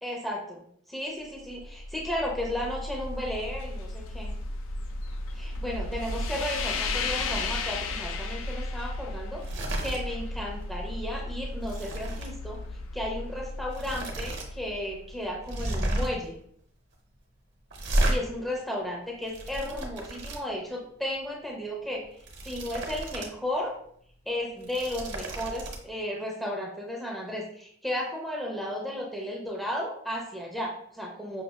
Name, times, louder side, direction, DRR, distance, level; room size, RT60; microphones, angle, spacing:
voice 1, 0.0-0.6 0.9-4.3 5.3-12.6 12.9-16.4 18.1-22.0 22.4-23.8 24.3-31.4, left 1 dB, ahead, -3 dB, 0.5 m, -34 dB
sound 1, 1.4-15.5, left 2 dB, 80° left, 0.4 m, -34 dB
sound 2, 9.3-10.0 10.4-10.6 11.0-12.3 13.2-13.3 13.7-14.5 14.8-14.9 15.4-16.3 17.7-18.2 19.0-20.4 22.0-23.3 23.7-23.8 24.5-25.8, right 1 dB, 60° right, 0.8 m, -32 dB
5.6 x 2.4 x 2.2 m, 0.66 s
head